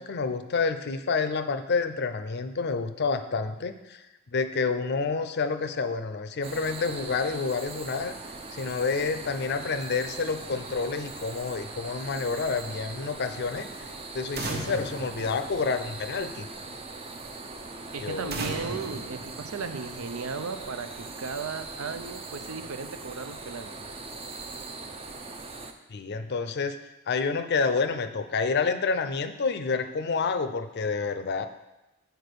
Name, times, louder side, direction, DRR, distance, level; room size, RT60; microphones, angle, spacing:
voice 1, 0.0-4.0 4.3-8.1 8.5-16.5 18.0-18.3 25.9-26.8 27.1-31.5, left 4 dB, 50° left, 10 dB, 0.5 m, -29 dB
sound 1, 6.4-25.7, right 3 dB, 25° right, 0.5 m, -41 dB
sound 2, 14.4-16.2 18.3-20.1, right 2 dB, 45° right, 1.1 m, -37 dB
voice 2, 17.9-23.9, right 5 dB, 80° right, 9 dB, 0.7 m, -36 dB
8.0 x 4.6 x 6.7 m, 1.0 s
head